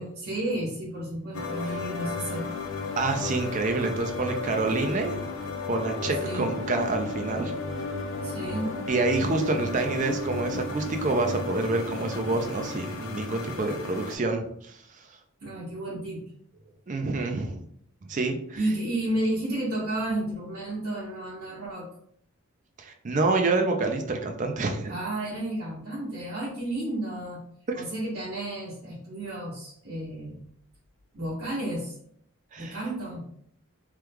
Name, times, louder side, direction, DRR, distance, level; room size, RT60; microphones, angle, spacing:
voice 1, 0.0-2.5 6.2-6.5 8.2-8.7 15.4-16.2 18.6-21.9 24.9-27.4 27.7-30.4 31.1-31.9 32.5-33.2, right 1 dB, 85° right, -10 dB, 1.3 m, -32 dB
sound 1, 1.3-14.2, left 3 dB, 60° left, 0.5 m, -34 dB
voice 2, 3.0-5.3 5.7-7.5 8.9-14.8 16.9-17.6 18.1-18.6 22.8-24.9 27.7-27.8 32.5-32.8, right 3 dB, 35° right, 4 dB, 0.4 m, -27 dB
3.0 x 2.3 x 3.4 m, 0.67 s
head